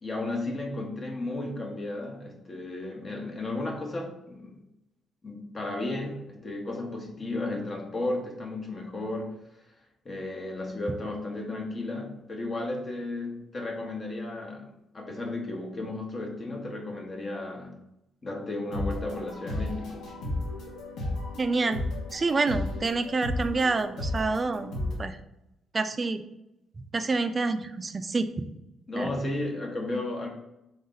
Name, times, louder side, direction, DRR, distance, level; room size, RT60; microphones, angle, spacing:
voice 1, 0.0-4.5 5.2-9.4 10.0-17.8 18.2-20.0 28.9-30.3, left 2 dB, 35° left, 1 dB, 0.8 m, -34 dB
sound 1, 18.7-24.9, left 1 dB, 80° left, 1.1 m, -34 dB
voice 2, 21.4-21.8 22.1-24.7 25.0-25.2 25.7-26.2 26.8-28.3 29.0-29.1, right 3 dB, 30° right, 10 dB, 0.3 m, -27 dB
3.7 x 2.6 x 3.9 m, 0.86 s
cardioid pair, 90°, 0 cm